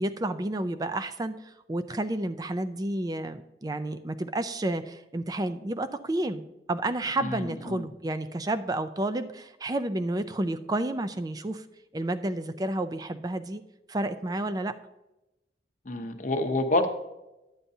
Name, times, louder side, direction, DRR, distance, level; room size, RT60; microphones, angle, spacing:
voice 1, 0.0-6.4 6.7-11.6 11.9-13.6 13.9-14.7, right 1 dB, 20° right, 11 dB, 0.4 m, -30 dB
voice 2, 7.2-7.9 15.8-16.9, left 2 dB, 45° left, 5 dB, 0.8 m, -28 dB
11.0 x 9.0 x 2.7 m, 0.97 s
head